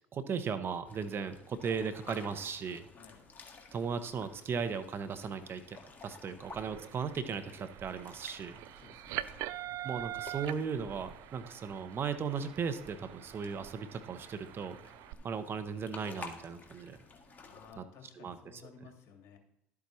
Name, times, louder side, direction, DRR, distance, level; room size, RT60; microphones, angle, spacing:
voice 1, 0.1-2.9 3.7-8.6 9.8-14.8 15.2-17.0 17.8-17.9 18.2-18.4 18.6-18.7, right 6 dB, 40° right, 10 dB, 0.9 m, -37 dB
sound 1, 0.8-17.7, left 3 dB, 30° left, 1.8 m, -53 dB
sound 2, 6.4-15.1, right 14 dB, 65° right, 0.4 m, -44 dB
voice 2, 8.8-9.4 15.1-15.4 17.2-19.4, left 6 dB, 55° left, 3 dB, 2.2 m, -56 dB
12.0 x 8.5 x 3.2 m, 0.82 s
hypercardioid pair, 75°, 6 cm